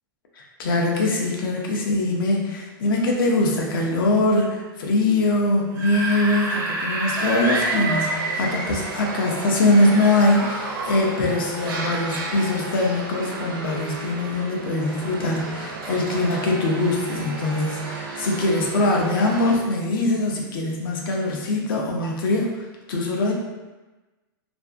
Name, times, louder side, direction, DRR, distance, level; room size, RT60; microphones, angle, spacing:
voice 1, 0.4-22.6 22.9-23.3, left 2 dB, 70° left, 0 dB, 0.6 m, -22 dB
Screaming / Screech, 5.6-9.0 9.9-11.0, right 2 dB, 25° right, 0.3 m, -28 dB
sound 1, 7.2-19.6, right 2 dB, 75° right, 0.5 m, -33 dB
2.5 x 2.5 x 2.4 m, 1.2 s
supercardioid pair, 145°, 12 cm